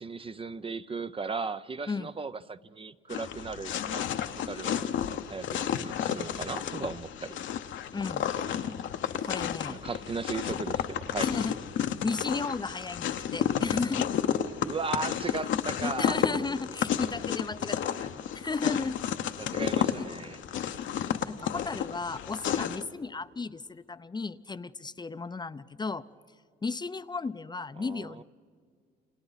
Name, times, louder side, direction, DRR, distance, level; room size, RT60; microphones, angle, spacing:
voice 1, 0.0-4.1 4.4-4.9 5.3-7.4 9.7-11.3 14.6-16.3 19.4-20.4 27.8-28.2, right 4 dB, 25° right, 13 dB, 0.5 m, -36 dB
sound 1, 3.1-22.8, left 9 dB, 70° left, 0.9 m, -32 dB
voice 2, 7.9-8.2 9.2-9.9 11.2-11.5 12.0-14.1 15.8-19.0 21.3-26.0 26.6-28.2, left 4 dB, 20° left, 13 dB, 0.6 m, -34 dB
29.5 x 27.5 x 4.1 m, 2.2 s
cardioid pair, 90°, 20 cm